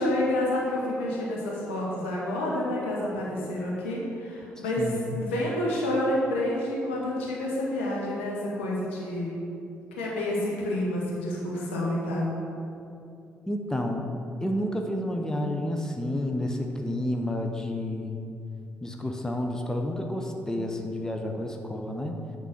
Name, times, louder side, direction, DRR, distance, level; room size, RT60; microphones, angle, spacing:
voice 1, 0.0-9.3 10.0-12.3, left 1 dB, 80° left, -5 dB, 1.3 m, -29 dB
voice 2, 4.6-5.2 13.5-14.1 14.4-18.2 18.8-22.2, left 1 dB, 10° left, 2 dB, 0.9 m, -30 dB
9.0 x 3.8 x 6.2 m, 2.6 s
figure-of-eight pair, 40°, 6 cm